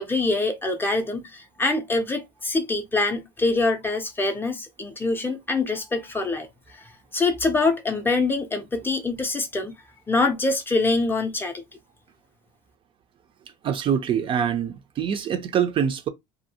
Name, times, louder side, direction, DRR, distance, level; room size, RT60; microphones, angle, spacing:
voice 1, 0.0-6.5 7.1-9.7 10.1-11.6, left 3 dB, 15° left, 0.5 m, -24 dB
voice 2, 13.6-16.1, right 8 dB, 35° right, 0.4 m, -24 dB
2.6 x 2.4 x 2.7 m
cardioid pair, 140°, 15 cm